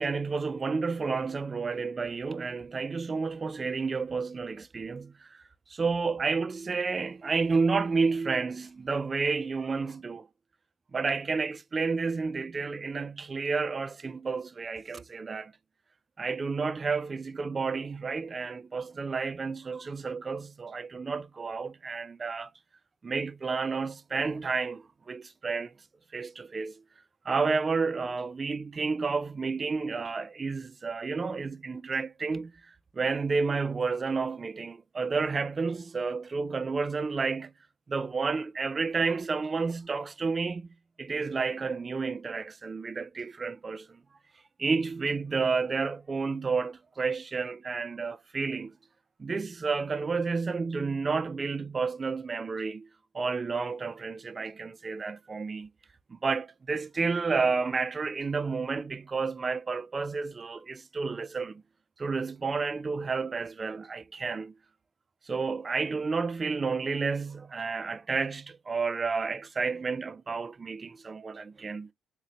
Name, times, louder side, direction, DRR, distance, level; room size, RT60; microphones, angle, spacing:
voice 1, 0.0-5.4 5.7-10.3 10.9-15.5 16.2-22.5 23.0-25.7 26.1-26.8 27.2-37.5 37.9-40.7 41.0-44.0 44.6-48.7 49.2-52.9 53.1-55.7 56.1-61.6 62.0-64.5 65.2-71.9, right 4 dB, 35° right, 0.3 m, -31 dB
3.9 x 2.1 x 2.9 m
cardioid pair, 90°, 0 cm